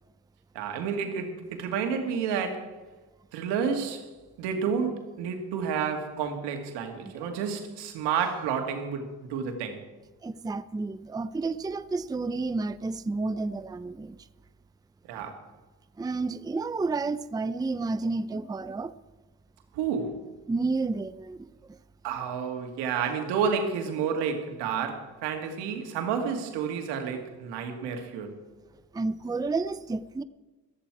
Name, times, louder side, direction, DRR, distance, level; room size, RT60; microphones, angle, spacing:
voice 1, 0.5-2.7 3.3-4.1 4.4-9.8 15.1-15.4 19.7-20.3 22.0-28.4, right 6 dB, 85° right, 2.3 m, -30 dB
voice 2, 10.2-14.2 15.1-15.2 16.0-18.9 20.5-21.8 28.9-30.2, right 3 dB, 10° right, 0.5 m, -31 dB
15.0 x 14.0 x 4.8 m
supercardioid pair, 70°, 40 cm